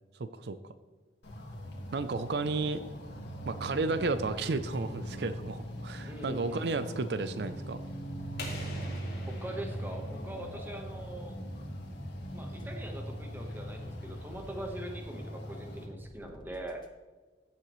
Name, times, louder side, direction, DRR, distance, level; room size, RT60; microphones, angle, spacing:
voice 1, 0.1-0.6 1.9-2.8 3.5-7.8, right 3 dB, 70° right, 12 dB, 0.5 m, -32 dB
sound 1, 1.2-15.9, equal, 85° left, 1.9 m, -40 dB
sound 2, 1.3-2.8 3.3-3.4 3.7-3.8 4.2-4.4 4.7-4.8 5.2-6.7 7.2-7.3 7.7-7.8 8.2-10.7 11.1-11.2 11.6-11.7 12.1-12.2 12.6-12.7 13.1-14.6 15.1-15.2 15.5-15.6 16.0-16.9, left 1 dB, 25° left, 0.9 m, -58 dB
voice 2, 6.0-6.7 9.3-11.4 12.3-16.8, right 1 dB, 10° right, 3 dB, 1.2 m, -42 dB
sound 3, 8.4-11.0, left 2 dB, 60° left, 3.7 m, -45 dB
15.5 x 7.6 x 3.1 m, 1.3 s
head